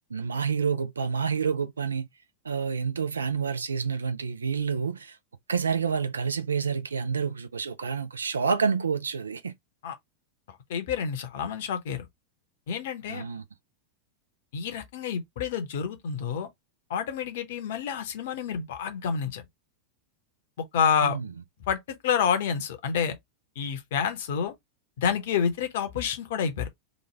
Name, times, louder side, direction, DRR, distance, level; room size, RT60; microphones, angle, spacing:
voice 1, 0.1-2.1 2.4-5.2 5.5-9.5 13.1-13.4 21.0-21.3, right 6 dB, 75° right, 0.4 m, -28 dB
voice 2, 10.5-12.1 12.7-13.3 14.5-16.5 16.9-19.4 20.6-21.2 21.7-23.2 23.6-24.5 25.0-26.7, left 7 dB, 55° left, 0.7 m, -28 dB
3.0 x 2.3 x 3.3 m
figure-of-eight pair, 90°, 0 cm